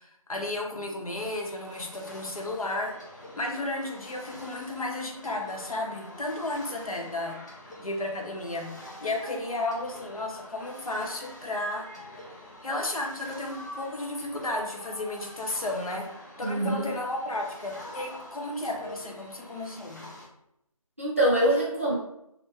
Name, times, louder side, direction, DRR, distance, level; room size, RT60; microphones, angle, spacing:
voice 1, 0.0-3.0 3.3-7.4 7.8-11.9 12.6-16.1 16.4-20.0, left 2 dB, 75° left, 1 dB, 0.8 m, -33 dB
sound 1, 1.2-20.3, left 1 dB, 30° left, 0.5 m, -46 dB
voice 2, 16.4-16.9 21.0-21.9, right 1 dB, 25° right, -7 dB, 0.6 m, -24 dB
3.3 x 2.1 x 3.1 m, 0.79 s
figure-of-eight pair, 175°, 18 cm